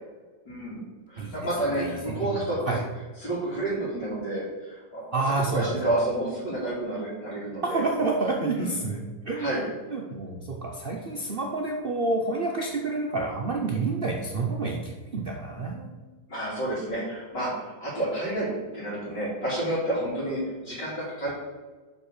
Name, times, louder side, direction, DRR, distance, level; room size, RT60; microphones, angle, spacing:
voice 1, 0.5-0.8 1.1-2.8 3.2-7.8 8.6-8.7 9.4-9.6 16.3-21.3, right 1 dB, 75° left, -11 dB, 3.4 m, -30 dB
voice 2, 5.1-5.7 7.6-9.5 9.9-16.0, right 3 dB, 50° right, 0 dB, 0.6 m, -28 dB
5.3 x 5.3 x 6.5 m, 1.3 s
omnidirectional pair, 1.9 m